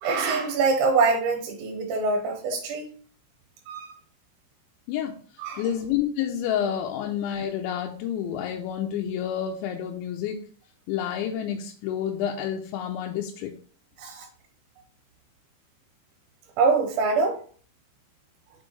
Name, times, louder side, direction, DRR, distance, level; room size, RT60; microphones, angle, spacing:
voice 1, 0.0-2.9 3.7-4.0 5.4-5.7 14.0-14.3 16.6-17.4, right 4 dB, 85° right, 2 dB, 3.3 m, -24 dB
voice 2, 5.6-10.4 10.9-13.5, left 9 dB, 85° left, 1 dB, 3.1 m, -29 dB
7.1 x 4.4 x 3.2 m, 0.43 s
omnidirectional pair, 5.2 m